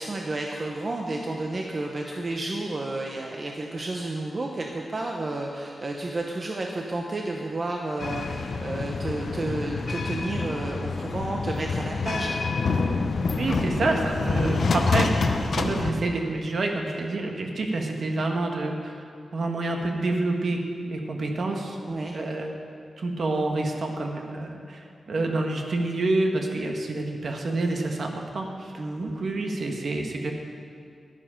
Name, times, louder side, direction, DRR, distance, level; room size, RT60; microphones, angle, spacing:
voice 1, 0.0-12.4 21.9-22.2 28.8-29.2, right 2 dB, 35° right, 1 dB, 0.7 m, -31 dB
sound 1, 8.0-15.9, left 4 dB, 55° left, 0.7 m, -27 dB
voice 2, 13.3-21.8 22.1-22.6 23.0-30.3, right 2 dB, 55° right, 2 dB, 1.3 m, -28 dB
11.0 x 9.6 x 5.7 m, 2.3 s
wide cardioid pair, 155°, 0 cm